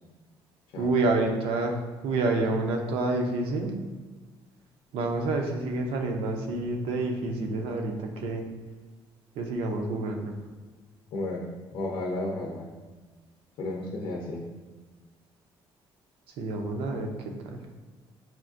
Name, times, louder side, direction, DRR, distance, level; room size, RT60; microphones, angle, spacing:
voice 1, 0.8-1.8 2.0-3.7 4.9-8.5 9.4-10.3 16.4-17.6, right 2 dB, 80° right, 3 dB, 0.5 m, -28 dB
voice 2, 11.1-12.7 13.6-14.5, left 2 dB, 65° left, -2 dB, 0.6 m, -33 dB
5.7 x 2.5 x 2.5 m, 1.3 s
cardioid pair, 140°, 9 cm